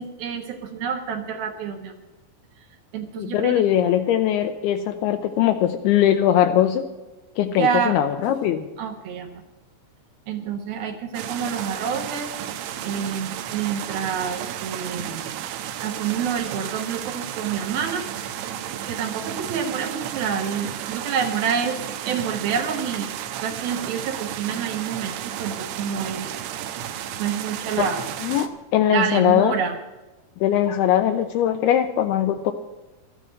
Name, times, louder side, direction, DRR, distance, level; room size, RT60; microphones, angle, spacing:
voice 1, 0.0-1.9 2.9-3.7 7.6-8.0 8.8-9.4 10.3-12.3 12.8-15.2 15.8-18.1 18.9-23.1 23.4-26.3 27.2-28.0 28.8-29.8, right 7 dB, 70° right, 5 dB, 2.6 m, -28 dB
voice 2, 3.2-6.8 7.4-8.6 27.8-27.9 28.2-29.5 30.4-32.5, left 11 dB, 80° left, 8 dB, 2.4 m, -20 dB
sound 1, 11.1-28.5, right 10 dB, 85° right, 3.3 m, -33 dB
13.5 x 10.0 x 7.6 m, 1.1 s
omnidirectional pair, 5.1 m